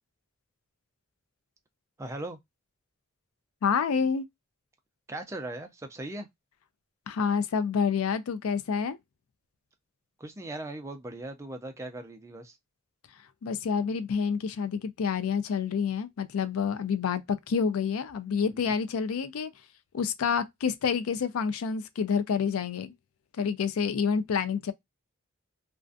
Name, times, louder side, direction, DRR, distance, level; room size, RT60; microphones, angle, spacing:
voice 1, 2.0-2.4 5.1-6.3 10.2-12.6 18.5-18.7, right 2 dB, 15° right, 0.3 m, -39 dB
voice 2, 3.6-4.3 7.1-9.0 13.4-19.5 19.9-22.9 23.4-24.7, left 6 dB, 85° left, 0.4 m, -28 dB
2.4 x 2.2 x 2.4 m
head